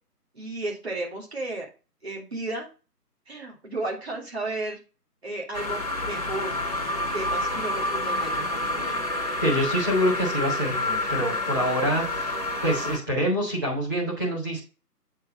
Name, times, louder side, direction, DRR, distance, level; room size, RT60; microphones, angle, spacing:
voice 1, 0.3-1.7 2.0-2.7 3.3-4.8 5.2-6.6 7.0-8.9, right 2 dB, 40° right, -1 dB, 2.3 m, -33 dB
sound 1, 5.5-13.0, left 2 dB, 25° left, 1.2 m, -28 dB
voice 2, 9.4-12.3 12.6-14.6, equal, 15° right, -6 dB, 1.5 m, -26 dB
8.0 x 3.3 x 5.3 m, 0.33 s
figure-of-eight pair, 160°, 48 cm